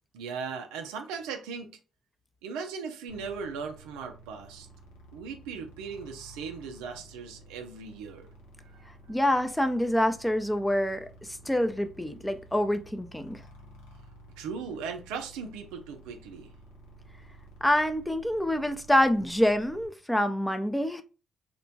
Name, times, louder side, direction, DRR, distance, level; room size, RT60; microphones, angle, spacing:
voice 1, 0.1-1.8 2.4-4.7 5.1-8.3 14.4-16.5, right 5 dB, 85° right, 0.4 m, -38 dB
sound 1, 3.1-19.9, right 1 dB, 85° left, 0.6 m, -52 dB
voice 2, 9.1-13.4 17.6-21.0, left 1 dB, 10° left, 0.4 m, -26 dB
2.9 x 2.1 x 2.6 m
hypercardioid pair, 50°, 0 cm